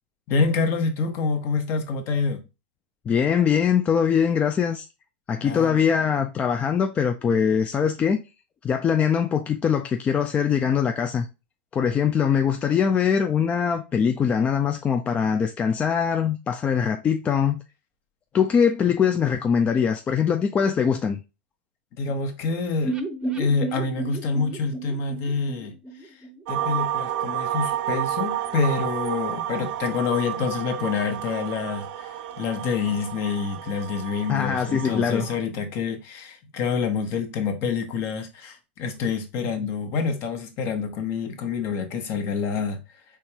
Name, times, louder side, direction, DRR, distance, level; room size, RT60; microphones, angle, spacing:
voice 1, 0.3-2.4 5.4-5.8 22.0-23.0 23.4-25.7 26.0-26.2 26.5-42.8, left 5 dB, 45° left, 1.1 m, -27 dB
voice 2, 3.1-4.9 5.3-8.2 8.6-11.3 11.7-17.6 18.3-21.2 34.3-35.3, left 7 dB, 25° left, 0.4 m, -22 dB
sound 1, 22.8-26.7 27.0-27.1 27.4-27.5, right 2 dB, 15° right, 0.7 m, -32 dB
sound 2, 26.5-35.4, right 11 dB, 55° right, 0.4 m, -31 dB
4.4 x 3.5 x 2.9 m
hypercardioid pair, 110°, 6 cm